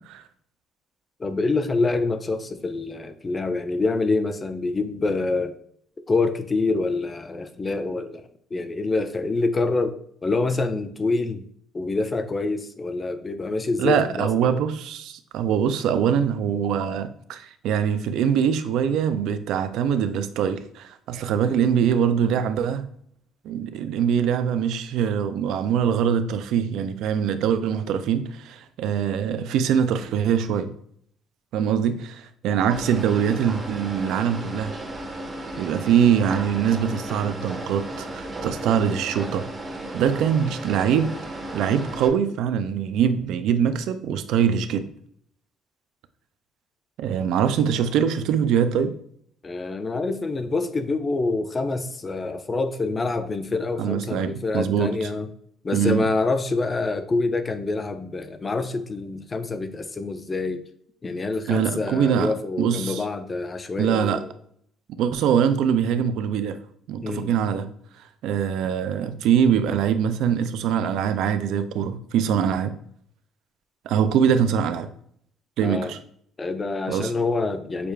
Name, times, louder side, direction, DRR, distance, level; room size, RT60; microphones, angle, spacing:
voice 1, 1.2-5.5 6.1-10.0 10.2-11.4 11.7-14.7 49.4-55.3 55.6-60.6 61.0-64.3 67.0-67.3 75.6-75.9 76.4-77.9, left 3 dB, 20° left, 0.4 m, -26 dB
voice 2, 13.8-22.9 23.4-30.7 31.5-34.7 35.6-39.5 39.9-41.2 41.5-44.9 47.0-49.0 53.8-55.1 55.7-56.1 61.5-63.0 63.8-64.2 65.0-66.6 66.9-67.7 68.2-72.7 73.9-74.9 75.6-76.0 76.9-77.1, right 8 dB, 75° right, 0.4 m, -23 dB
sound 1, 32.7-42.1, right 1 dB, 25° right, 0.6 m, -34 dB
6.6 x 2.4 x 3.2 m
cardioid pair, 145°, 0 cm